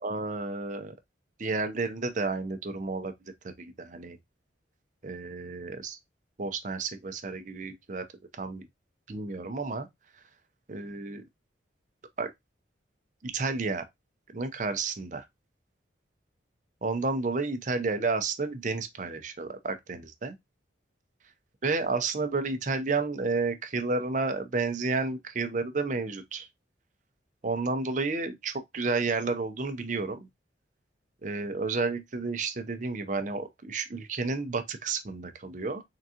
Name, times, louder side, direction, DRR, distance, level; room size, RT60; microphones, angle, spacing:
voice 1, 0.0-0.9 1.4-3.1 3.4-4.2 5.0-6.0 6.4-8.1 8.4-8.7 9.1-9.9 10.7-11.2 12.2-12.3 13.2-13.8 14.3-15.2 16.8-20.3 21.6-26.5 27.4-30.2 31.2-35.8, right 3 dB, 40° right, 0.6 m, -31 dB
3.8 x 3.6 x 2.7 m
head